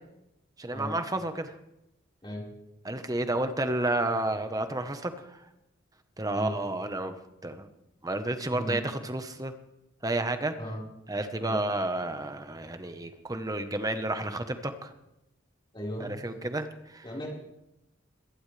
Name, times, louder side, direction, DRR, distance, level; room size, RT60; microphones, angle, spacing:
voice 1, 0.6-1.5 2.8-5.1 6.2-7.2 7.4-7.7 8.0-9.5 10.0-10.5 11.1-14.9 16.0-17.0, right 2 dB, 20° right, 8 dB, 1.2 m, -31 dB
voice 2, 15.7-16.1 17.0-17.3, equal, 25° left, -3 dB, 4.9 m, -36 dB
22.0 x 17.5 x 3.4 m, 0.88 s
head